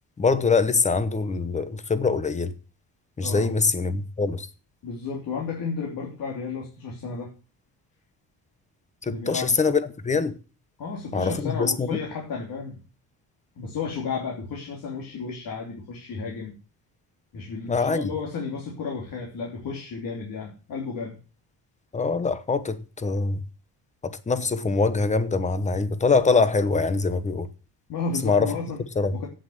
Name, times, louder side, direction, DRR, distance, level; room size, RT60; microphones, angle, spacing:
voice 1, 0.2-2.5 3.2-4.5 9.0-10.3 11.1-12.0 17.7-18.1 21.9-23.4 24.0-27.5 28.2-28.5 29.0-29.1, left 4 dB, 15° left, 0.9 m, -23 dB
voice 2, 3.2-3.5 4.8-7.3 9.1-9.5 10.8-12.8 13.6-16.5 17.3-21.2 27.9-28.8 29.1-29.3, left 5 dB, 55° left, 3.0 m, -33 dB
8.8 x 7.9 x 7.9 m
cardioid pair, 175°, 41 cm